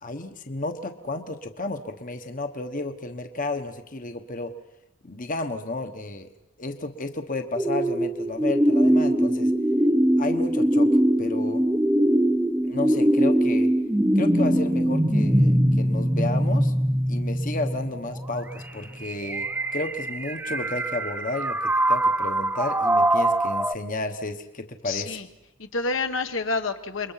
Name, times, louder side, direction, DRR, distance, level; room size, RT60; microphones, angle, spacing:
voice 1, 0.0-4.5 5.0-6.3 6.6-9.5 10.2-10.9 11.2-11.6 12.6-13.7 14.1-16.7 17.1-21.6 21.9-25.2, left 2 dB, 40° left, 7 dB, 1.3 m, -32 dB
sound 1, 7.6-23.7, right 1 dB, 10° right, 0.8 m, -22 dB
voice 2, 24.8-25.2 25.6-27.1, left 3 dB, 70° left, 7 dB, 1.5 m, -28 dB
29.0 x 22.5 x 5.8 m, 0.90 s
head